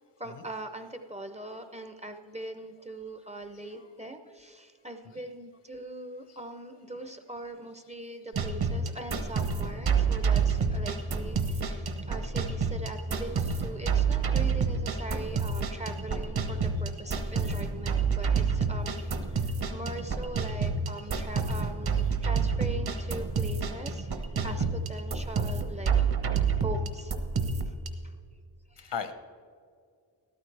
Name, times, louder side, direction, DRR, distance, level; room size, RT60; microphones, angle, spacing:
voice 1, 0.2-26.1 26.6-27.1 27.6-27.7 28.0-28.1 28.7-28.9, right 1 dB, 15° right, 7 dB, 0.5 m, -41 dB
sound 1, 8.4-27.9, right 5 dB, 55° right, 1.0 m, -29 dB
voice 2, 28.8-29.1, left 6 dB, 70° left, 9 dB, 1.0 m, -38 dB
13.5 x 13.0 x 3.3 m, 2.2 s
wide cardioid pair, 165°, 45 cm